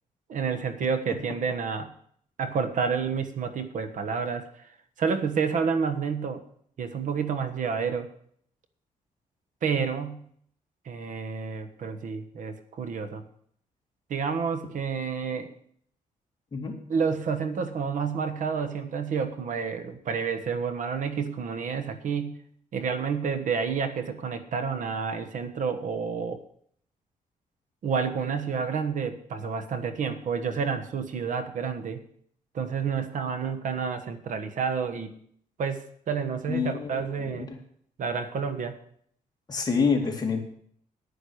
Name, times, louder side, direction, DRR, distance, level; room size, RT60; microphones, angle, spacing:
voice 1, 0.3-1.9 2.4-4.7 5.0-6.4 6.8-8.1 9.6-10.3 10.8-13.2 14.1-15.5 16.9-22.4 22.7-26.4 27.8-32.0 32.5-35.1 35.6-37.5 38.0-38.8, right 6 dB, 65° right, 9 dB, 1.3 m, -29 dB
voice 2, 36.5-37.6 39.5-40.4, left 5 dB, 30° left, 1 dB, 2.5 m, -27 dB
10.5 x 10.0 x 6.5 m, 0.63 s
wide cardioid pair, 150°, 14 cm